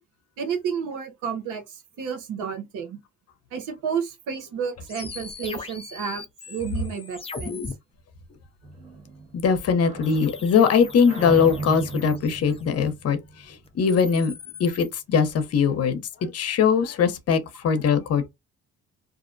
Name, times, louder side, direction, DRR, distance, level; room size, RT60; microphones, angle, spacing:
voice 1, 0.4-3.0 3.5-7.6, right 6 dB, 90° right, 0.9 m, -31 dB
sound 1, 4.9-7.7 10.0-12.8 13.7-14.9, left 5 dB, 20° left, 0.4 m, -39 dB
sound 2, 8.6-14.1, right 3 dB, 20° right, 1.1 m, -37 dB
voice 2, 9.3-13.2 13.5-14.3 14.6-18.3, left 6 dB, 55° left, 0.7 m, -21 dB
2.5 x 2.1 x 2.5 m
cardioid pair, 90°, 30 cm